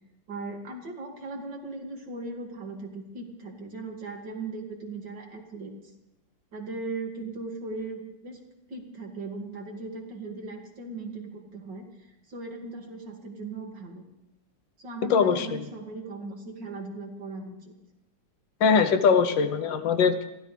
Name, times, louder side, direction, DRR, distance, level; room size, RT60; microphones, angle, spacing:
voice 1, 0.3-5.9 6.5-8.4 8.7-14.0 14.8-17.7, right 2 dB, 70° right, 1 dB, 3.1 m, -38 dB
voice 2, 15.1-15.5 18.6-20.3, left 6 dB, 80° left, 10 dB, 1.7 m, -21 dB
22.5 x 16.0 x 3.4 m, 0.93 s
omnidirectional pair, 2.0 m